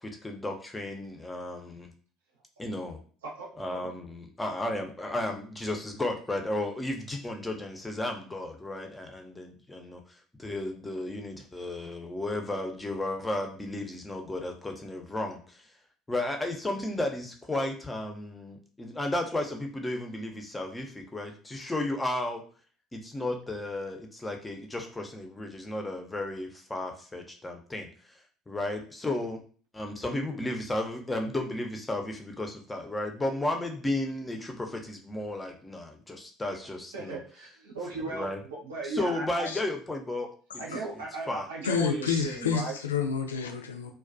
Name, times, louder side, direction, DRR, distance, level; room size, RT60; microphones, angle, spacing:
voice 1, 0.0-1.9 2.6-3.0 3.6-15.6 16.1-22.5 22.9-27.9 28.5-29.4 29.7-37.2 38.1-38.4 38.8-40.3 41.3-41.5, left 1 dB, 15° left, 3 dB, 0.5 m, -33 dB
voice 2, 3.2-3.5 36.9-39.5 40.6-42.8, right 3 dB, 85° right, -3 dB, 0.7 m, -36 dB
voice 3, 41.6-43.9, left 6 dB, 90° left, 4 dB, 0.3 m, -29 dB
2.3 x 2.2 x 2.4 m, 0.42 s
hypercardioid pair, 65°, 0 cm